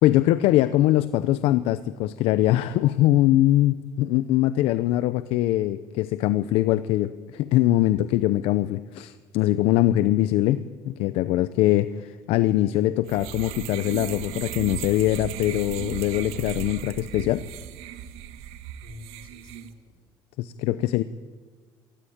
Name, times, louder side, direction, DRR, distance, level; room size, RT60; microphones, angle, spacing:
voice 1, 0.0-17.4 20.4-21.0, left 14 dB, 80° left, 14 dB, 0.7 m, -22 dB
sound 1, 13.1-19.7, right 11 dB, 90° right, 1.6 m, -36 dB
voice 2, 18.7-20.0, left 3 dB, 55° left, 4 dB, 5.0 m, -47 dB
26.0 x 19.5 x 8.8 m, 1.5 s
cardioid pair, 130°, 10 cm